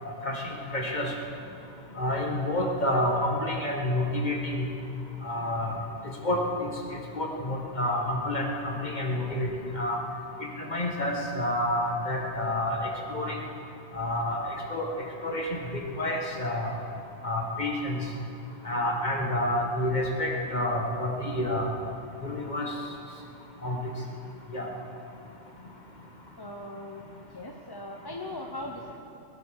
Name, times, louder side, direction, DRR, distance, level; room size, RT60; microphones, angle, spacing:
voice 1, 0.2-1.1 2.0-4.7 5.2-5.8 6.2-6.7 7.1-10.0 10.4-13.4 13.9-14.4 14.7-14.9 15.2-16.8 17.2-18.0 18.6-21.7 22.2-22.7 23.6-23.8 24.5-24.7, left 1 dB, 40° left, 0 dB, 2.0 m, -29 dB
voice 2, 26.4-27.0 27.3-29.0, left 1 dB, 25° left, 1 dB, 0.8 m, -39 dB
19.5 x 11.5 x 6.5 m, 2.7 s
omnidirectional pair, 1.2 m